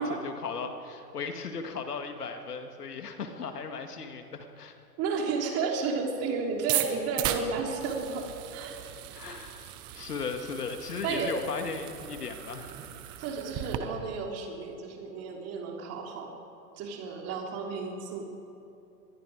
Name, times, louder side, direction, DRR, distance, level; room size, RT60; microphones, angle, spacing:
voice 1, 0.0-4.8 9.1-12.8, left 5 dB, 75° left, 6 dB, 2.2 m, -37 dB
voice 2, 5.0-8.8 11.0-11.4 13.2-16.4 16.8-18.2, right 4 dB, 30° right, 1 dB, 3.3 m, -32 dB
sound 1, 6.6-13.8, right 13 dB, 10° right, 0.4 m, -36 dB
25.0 x 21.0 x 4.9 m, 2.8 s
figure-of-eight pair, 115°, 47 cm